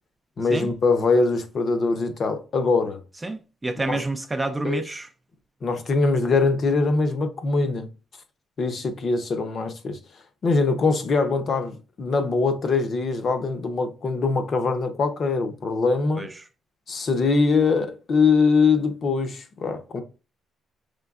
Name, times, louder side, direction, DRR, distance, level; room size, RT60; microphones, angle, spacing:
voice 1, 0.4-3.0 3.9-4.0 4.6-4.8 5.6-7.9 8.6-10.0 10.4-16.3 16.9-20.0, left 4 dB, 40° left, 0.6 m, -22 dB
voice 2, 3.2-5.1 16.2-16.3, right 2 dB, 15° right, 0.3 m, -28 dB
5.1 x 3.3 x 2.3 m
cardioid pair, 160°, 0 cm